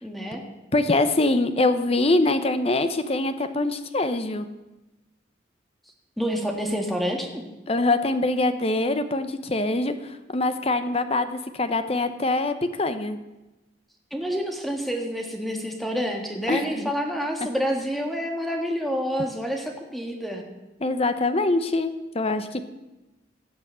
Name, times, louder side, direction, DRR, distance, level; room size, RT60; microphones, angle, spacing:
voice 1, 0.0-0.4 6.2-7.4 14.1-20.4, equal, ahead, 2 dB, 1.6 m, -28 dB
voice 2, 0.7-4.5 7.7-13.2 16.5-16.9 20.8-22.6, left 2 dB, 30° left, 10 dB, 0.8 m, -24 dB
16.5 x 6.2 x 7.6 m, 1.0 s
head